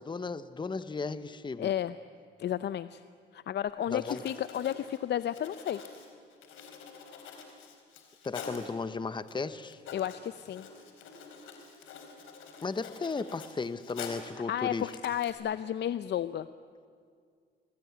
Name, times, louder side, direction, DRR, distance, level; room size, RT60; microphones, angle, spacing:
voice 1, 0.0-1.7 3.9-4.2 8.2-9.8 12.6-14.9, left 4 dB, 25° left, 13 dB, 1.0 m, -35 dB
voice 2, 1.6-1.9 2.4-3.0 3.3-5.8 9.9-10.7 14.5-16.5, left 11 dB, 60° left, 13 dB, 0.7 m, -32 dB
Writing, 3.7-3.8 4.0-8.7 9.3-9.4 9.6-14.4 14.8-15.3, left 5 dB, 85° left, 4.2 m, -46 dB
27.5 x 21.0 x 9.6 m, 2.1 s
cardioid pair, 90°, 20 cm